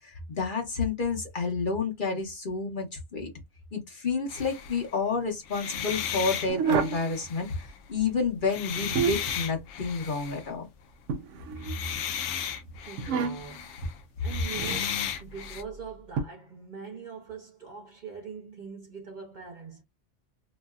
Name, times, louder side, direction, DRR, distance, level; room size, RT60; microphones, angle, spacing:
voice 1, 0.0-3.3 3.7-10.7, left 4 dB, 45° left, 1.0 m, -30 dB
sound 1, 4.3-4.9 5.4-8.0 8.4-10.5 11.5-15.6, left 8 dB, 75° left, 0.9 m, -35 dB
sound 2, 6.5-7.1 8.6-9.4 11.1-12.0 13.0-13.6 14.5-14.9 16.2-16.3, right 6 dB, 85° right, 0.9 m, -29 dB
voice 2, 12.8-13.7 14.2-19.8, right 5 dB, 45° right, 0.9 m, -42 dB
3.0 x 2.6 x 2.3 m
omnidirectional pair, 1.2 m